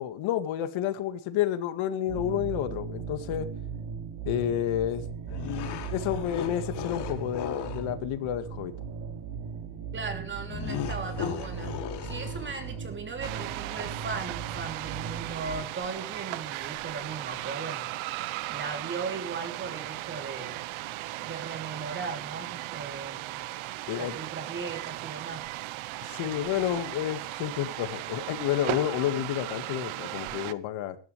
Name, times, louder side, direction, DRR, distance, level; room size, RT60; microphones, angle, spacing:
voice 1, 0.0-3.5 4.3-5.1 5.4-8.7 23.9-24.2 26.1-31.0, left 11 dB, 75° left, 2.0 m, -30 dB
sound 1, 2.1-15.6, right 6 dB, 55° right, 4.3 m, -38 dB
sound 2, 5.3-7.9 10.5-12.8, left 8 dB, 55° left, 2.8 m, -36 dB
voice 2, 9.9-11.8 12.0-17.9 18.5-20.6 21.2-23.4 24.0-25.5, right 4 dB, 25° right, 3.2 m, -37 dB
sound 3, 13.2-30.5, right 17 dB, 80° right, 1.0 m, -37 dB
21.5 x 12.0 x 3.3 m
cardioid pair, 170°, 47 cm